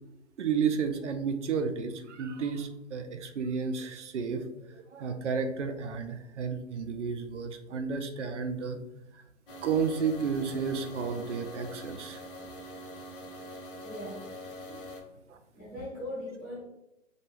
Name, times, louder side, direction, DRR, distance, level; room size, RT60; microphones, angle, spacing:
voice 1, 0.4-8.8 9.1-9.2 9.6-12.2 14.7-14.8 15.3-15.4, right 6 dB, 65° right, 7 dB, 0.5 m, -32 dB
sound 1, 9.5-15.0, equal, 45° left, 0.8 m, -44 dB
voice 2, 13.8-14.3 15.5-16.6, left 1 dB, 10° left, -10 dB, 0.5 m, -39 dB
2.3 x 2.3 x 3.0 m, 0.88 s
hypercardioid pair, 140°, 39 cm